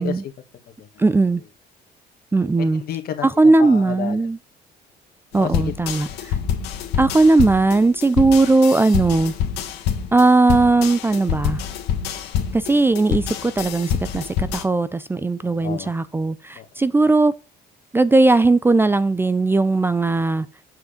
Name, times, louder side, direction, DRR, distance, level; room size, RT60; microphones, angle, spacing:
voice 1, 0.0-0.9 2.7-4.2 5.4-5.7 15.4-15.9 16.6-16.7, left 9 dB, 65° left, 1.7 m, -32 dB
voice 2, 1.0-1.4 2.3-2.8 3.2-4.4 5.3-6.4 7.0-9.3 10.1-11.6 12.5-17.3 17.9-20.5, right 3 dB, 15° right, 0.4 m, -18 dB
sound 1, 5.5-14.6, left 8 dB, 85° left, 1.7 m, -26 dB
7.9 x 4.8 x 5.1 m
cardioid pair, 110°, 17 cm